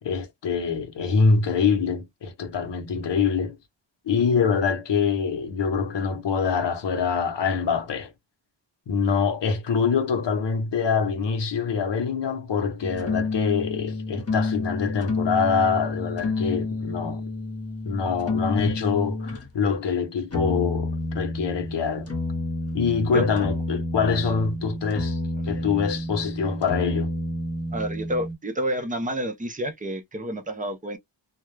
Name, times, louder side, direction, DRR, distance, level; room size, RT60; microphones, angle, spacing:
voice 1, 0.0-3.6 4.1-8.1 8.9-17.2 17.9-22.1 22.7-25.2 25.4-27.1, left 5 dB, 60° left, 0.7 m, -25 dB
sound 1, 12.8-19.5 20.3-28.3, left 2 dB, 30° left, 0.8 m, -30 dB
voice 2, 27.7-31.0, equal, 20° right, 0.4 m, -29 dB
2.3 x 2.0 x 3.0 m
wide cardioid pair, 145°, 48 cm